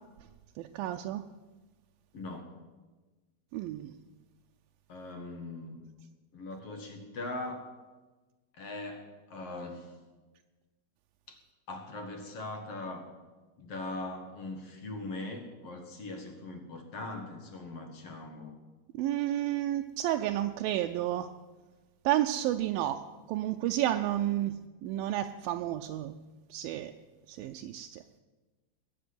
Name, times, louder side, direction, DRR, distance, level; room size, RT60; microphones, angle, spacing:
voice 1, 0.6-1.2 3.5-3.9 18.9-21.3 22.1-23.0 23.3-26.1 26.5-26.9 27.3-28.0, right 13 dB, 80° right, 6 dB, 2.2 m, -31 dB
voice 2, 2.1-2.5 4.9-5.8 6.3-7.8 8.5-9.9 11.3-11.4 11.7-13.0 13.6-18.6, left 2 dB, 50° left, 5 dB, 2.0 m, -41 dB
20.0 x 7.4 x 9.6 m, 1.2 s
omnidirectional pair, 4.6 m